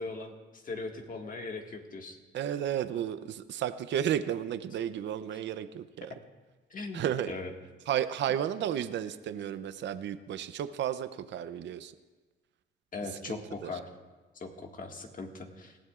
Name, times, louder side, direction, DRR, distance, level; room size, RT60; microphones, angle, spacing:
voice 1, 0.0-2.2 6.7-7.5 12.9-13.9 14.3-15.8, left 3 dB, 40° left, 3 dB, 1.7 m, -39 dB
voice 2, 2.3-6.1 6.9-7.3 7.9-11.9 13.3-13.7, right 10 dB, 65° right, 12 dB, 0.6 m, -33 dB
20.0 x 15.0 x 2.4 m, 1.3 s
cardioid pair, 90°, 20 cm